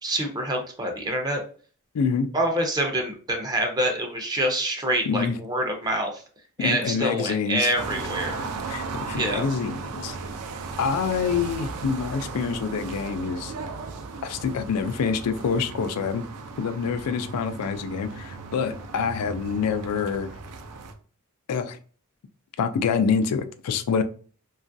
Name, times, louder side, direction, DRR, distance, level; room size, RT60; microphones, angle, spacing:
voice 1, 0.0-1.4 2.3-6.2 6.6-8.4 9.1-9.4, right 1 dB, 15° right, 3 dB, 0.5 m, -26 dB
voice 2, 1.9-2.3 5.1-5.4 6.6-7.7 8.7-10.2 10.8-13.5 14.2-16.3 16.6-20.3 21.5-21.8 22.6-24.0, left 6 dB, 90° left, 10 dB, 0.4 m, -26 dB
sound 1, 7.7-20.9, right 4 dB, 80° right, 0.4 m, -36 dB
2.9 x 2.4 x 2.5 m, 0.42 s
head